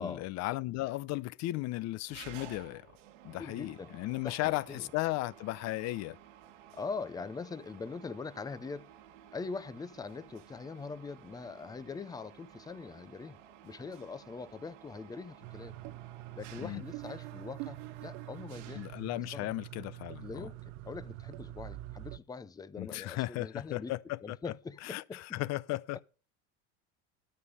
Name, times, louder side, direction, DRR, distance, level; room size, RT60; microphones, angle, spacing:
voice 1, 0.0-2.9 3.2-6.2 16.6-16.8 18.7-20.5 22.8-24.4 24.8-26.0, left 18 dB, 45° left, 0.7 m, -35 dB
Mechanisms, 2.1-19.5, right 11 dB, 80° right, 1.7 m, -54 dB
voice 2, 3.4-3.9 4.2-4.9 6.7-8.9 9.3-15.7 16.3-18.9 19.1-19.5 20.2-23.9 24.2-25.4, left 4 dB, 10° left, 0.6 m, -42 dB
sound 1, 15.4-22.2, right 16 dB, 60° right, 0.8 m, -45 dB
13.0 x 5.3 x 6.6 m
supercardioid pair, 125°, 36 cm